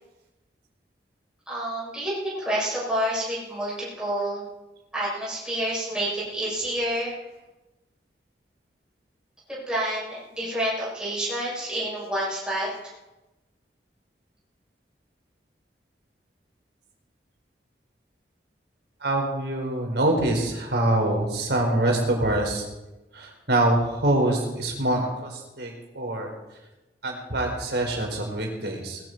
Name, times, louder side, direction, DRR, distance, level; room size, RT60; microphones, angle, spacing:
voice 1, 1.5-4.4 4.9-7.1 9.5-12.7, right 1 dB, 5° right, -9 dB, 7.8 m, -28 dB
voice 2, 19.0-22.6 23.1-26.3 27.0-29.0, right 1 dB, 70° right, 1 dB, 4.4 m, -25 dB
20.0 x 14.5 x 4.6 m, 1.0 s
head